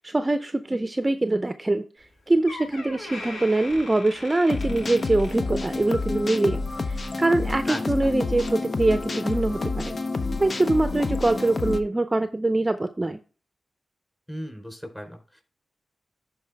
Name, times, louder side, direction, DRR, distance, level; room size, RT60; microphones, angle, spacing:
voice 1, 0.0-10.0 10.4-13.2, right 2 dB, 25° right, 10 dB, 0.6 m, -24 dB
Door, 2.0-2.1 2.5-6.0 6.3-6.6 7.3-7.4, left 2 dB, 85° left, 2.7 m, -40 dB
sound 1, 4.5-11.8, left 3 dB, 50° left, 0.8 m, -29 dB
voice 2, 7.7-8.1 14.3-15.4, equal, 10° left, 3 dB, 3.9 m, -37 dB
11.5 x 4.7 x 3.4 m, 0.37 s
cardioid pair, 50°, 0 cm